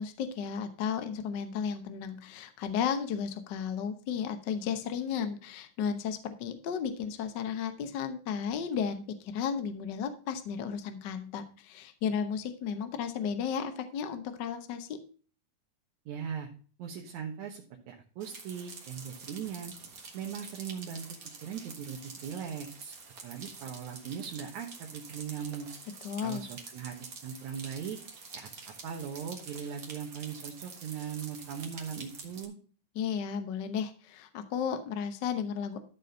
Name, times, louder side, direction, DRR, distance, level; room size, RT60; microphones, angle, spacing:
voice 1, 0.0-15.0 26.0-26.4 32.9-35.8, left 7 dB, 80° left, 8 dB, 0.9 m, -34 dB
voice 2, 16.1-16.5 16.8-19.7 20.1-21.1 21.4-22.9 23.2-25.7 26.2-28.0 28.3-32.5, right 7 dB, 75° right, 1 dB, 2.5 m, -39 dB
sound 1, 18.2-32.4, right 4 dB, 40° right, 1.5 m, -47 dB
13.0 x 4.3 x 5.3 m, 0.41 s
omnidirectional pair, 3.5 m